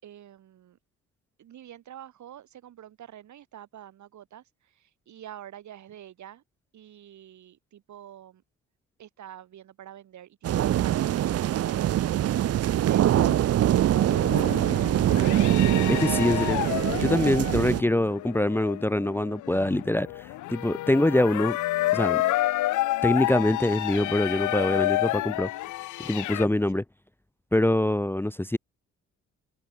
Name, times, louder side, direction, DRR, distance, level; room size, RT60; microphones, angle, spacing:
voice 1, 0.0-0.8 1.4-6.4 6.7-8.4 9.0-15.3, right 11 dB, 70° right, 6.0 m, -47 dB
sound 1, 10.4-17.8, right 12 dB, 55° right, 0.6 m, -23 dB
sound 2, 13.9-26.5, left 16 dB, 80° left, 0.7 m, -30 dB
voice 2, 15.9-16.6 16.9-21.6 21.9-22.2 23.0-25.5 26.0-26.8 27.5-28.6, left 1 dB, 5° left, 1.0 m, -24 dB
cardioid pair, 90°, 30 cm